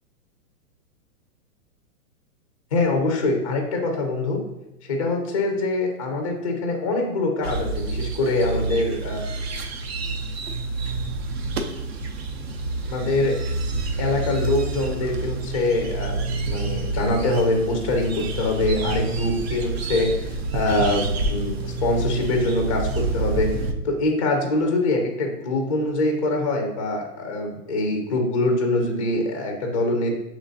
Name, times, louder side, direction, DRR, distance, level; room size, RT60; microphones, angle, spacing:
voice 1, 2.7-4.4 4.8-9.3 12.9-13.4 14.0-23.5 23.8-30.2, left 2 dB, 25° left, 3 dB, 0.4 m, -24 dB
sound 1, 7.4-23.7, right 3 dB, 45° right, 0.4 m, -28 dB
6.7 x 3.1 x 2.6 m, 0.90 s
hypercardioid pair, 150°, 46 cm